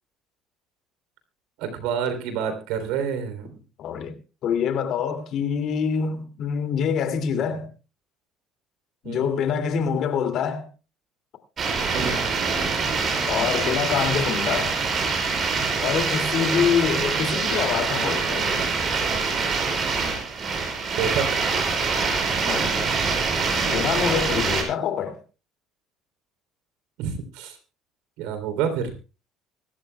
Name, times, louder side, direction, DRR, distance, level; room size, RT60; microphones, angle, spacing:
voice 1, 1.6-3.6 7.3-7.6 9.0-9.3 11.8-12.3 21.0-21.3 27.0-27.6 28.2-28.9, right 7 dB, 85° right, 3.2 m, -28 dB
voice 2, 3.8-4.2 4.4-7.7 9.0-10.7 13.2-14.8 15.8-18.8 22.4-22.7 23.6-25.2, left 7 dB, 60° left, 2.4 m, -25 dB
sound 1, 11.6-24.6, right 4 dB, 40° right, 5.7 m, -24 dB
24.5 x 13.0 x 2.3 m
supercardioid pair, 100°, 0 cm